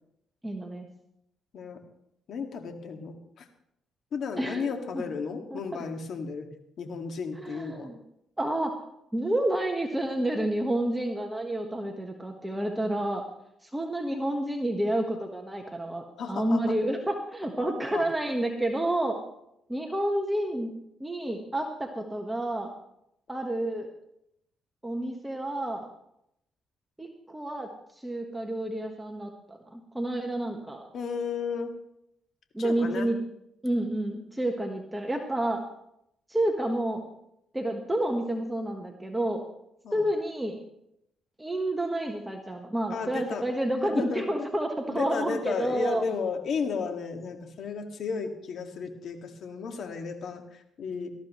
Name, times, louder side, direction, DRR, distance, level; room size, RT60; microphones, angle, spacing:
voice 1, 0.4-0.9 4.4-5.0 5.5-5.6 7.4-8.0 8.4-8.7 9.1-13.2 13.6-19.2 19.7-20.7 21.0-22.7 23.3-23.9 24.8-25.9 27.0-27.7 28.0-30.9 32.5-33.2 33.6-35.6 36.3-37.0 37.5-39.4 39.9-40.6 41.4-46.1, right 1 dB, 10° right, 2 dB, 1.4 m, -29 dB
voice 2, 2.3-3.4 4.1-6.5 6.8-7.9 16.2-16.7 17.9-18.1 30.9-31.7 32.6-33.1 39.8-40.0 42.9-43.4 43.8-44.3 44.9-51.1, left 5 dB, 65° left, 5 dB, 2.0 m, -34 dB
18.5 x 13.5 x 3.2 m, 0.78 s
cardioid pair, 90°, 0 cm